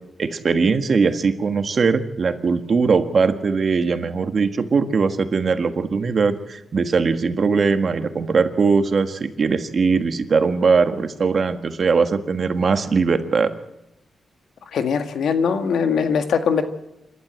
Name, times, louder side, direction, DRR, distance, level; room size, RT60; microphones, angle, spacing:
voice 1, 0.2-13.5, right 5 dB, 50° right, 8 dB, 1.6 m, -20 dB
voice 2, 14.7-16.6, left 6 dB, 85° left, 7 dB, 1.8 m, -21 dB
27.5 x 12.5 x 7.7 m, 0.89 s
cardioid pair, 95°, 0 cm